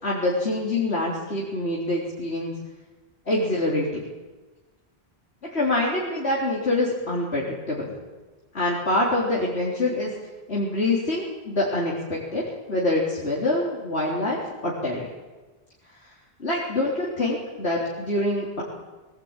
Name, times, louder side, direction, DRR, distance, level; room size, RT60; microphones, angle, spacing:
voice 1, 0.0-2.5 3.3-3.9 5.5-7.9 8.5-10.1 10.5-12.4 12.7-14.4 14.6-15.0 16.4-18.6, left 2 dB, 90° left, -4 dB, 4.1 m, -25 dB
23.0 x 18.5 x 9.1 m, 1.3 s
omnidirectional pair, 1.1 m